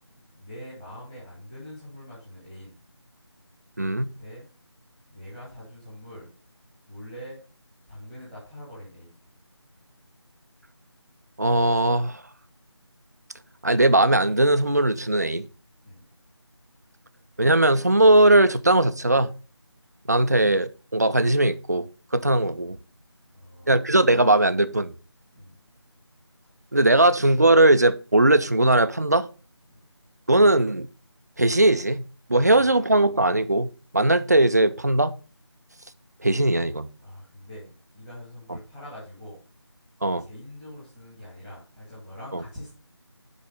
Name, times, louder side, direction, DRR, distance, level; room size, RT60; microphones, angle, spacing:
voice 1, 0.1-2.8 4.2-4.5 5.1-6.3 6.9-7.4 7.9-9.2 15.8-16.0 20.2-20.3 23.3-23.8 25.3-25.6 26.5-26.8 29.7-29.8 32.3-32.7 37.0-39.4 40.2-42.7, equal, 5° left, 1.6 m, -44 dB
voice 2, 3.8-4.1 11.4-12.2 13.6-15.5 17.4-19.4 20.1-21.9 22.1-22.8 23.7-24.9 26.7-29.3 30.3-30.9 31.4-33.7 33.9-35.1 36.2-36.9 40.0-40.2, right 2 dB, 35° right, 0.4 m, -19 dB
7.3 x 4.7 x 4.9 m
figure-of-eight pair, 165°, 15 cm